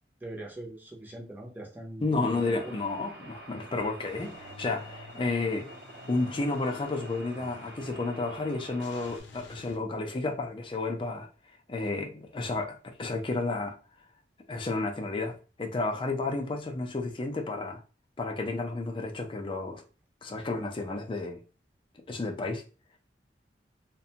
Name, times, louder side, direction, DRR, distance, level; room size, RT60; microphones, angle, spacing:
voice 1, 0.2-2.8, right 1 dB, 10° right, 0.6 m, -42 dB
voice 2, 2.0-5.7 6.1-11.3 11.7-13.8 14.5-17.8 18.2-19.8 20.2-21.4 22.1-22.6, left 3 dB, 30° left, 0.4 m, -31 dB
sound 1, 2.2-9.2, right 1 dB, 65° right, 0.7 m, -47 dB
Car / Engine starting / Idling, 4.0-9.8, left 3 dB, 85° left, 0.5 m, -50 dB
2.5 x 2.2 x 2.7 m
head